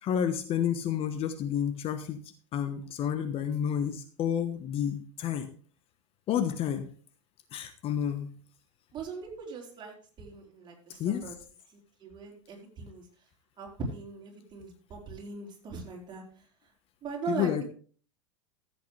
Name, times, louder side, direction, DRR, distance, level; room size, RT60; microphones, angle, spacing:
voice 1, 0.0-2.2 2.5-5.5 6.3-6.9 7.5-8.3 11.0-11.3 17.3-17.6, left 9 dB, 40° left, 9 dB, 1.2 m, -30 dB
voice 2, 8.9-11.3 12.0-13.0 13.6-16.2 17.0-17.5, right 5 dB, 30° right, -1 dB, 4.3 m, -40 dB
14.5 x 8.3 x 3.3 m, 0.42 s
hypercardioid pair, 90°, 16 cm